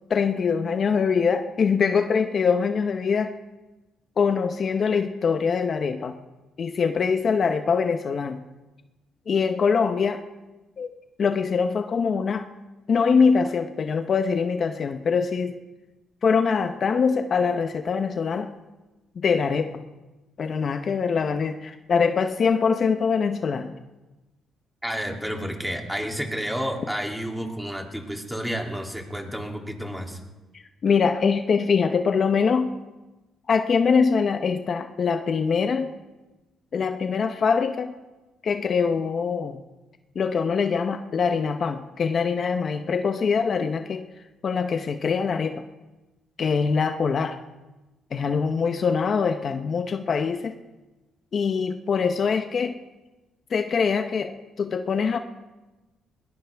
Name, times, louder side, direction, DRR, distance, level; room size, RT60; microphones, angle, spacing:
voice 1, 0.1-3.3 4.2-6.2 6.6-8.4 9.3-10.2 10.8-10.9 11.2-12.5 12.9-15.6 16.2-18.5 19.2-19.8 20.4-23.7 30.8-32.7 33.5-35.9 36.7-37.9 38.4-39.6 40.1-44.0 44.4-45.6 46.4-47.4 48.1-50.5 51.3-52.8 53.5-55.2, left 5 dB, 50° left, 7 dB, 0.8 m, -23 dB
voice 2, 24.8-30.2, equal, 5° right, 1 dB, 2.9 m, -30 dB
20.5 x 19.0 x 3.5 m, 1.1 s
cardioid pair, 90°, 0 cm